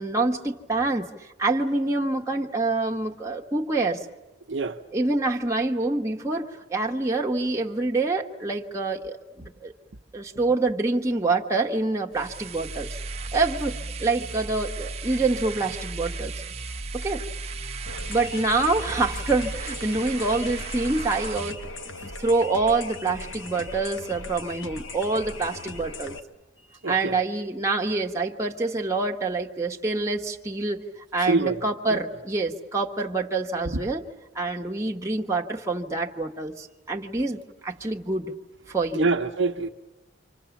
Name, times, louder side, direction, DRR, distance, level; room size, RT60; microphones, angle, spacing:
voice 1, 0.0-4.0 4.9-9.7 10.1-13.0 13.3-16.3 16.9-17.2 18.1-21.6 22.2-26.2 26.9-34.0 34.3-38.3 38.7-39.1, right 3 dB, 15° right, 1.4 m, -26 dB
voice 2, 4.5-4.8 26.8-27.2 31.3-31.6 31.9-32.0 38.9-39.7, right 3 dB, 65° right, 0.9 m, -25 dB
sound 1, 12.1-21.5, right 3 dB, 30° right, 1.1 m, -35 dB
sound 2, 17.9-26.2, left 3 dB, 70° left, 1.4 m, -39 dB
28.5 x 26.0 x 7.2 m
head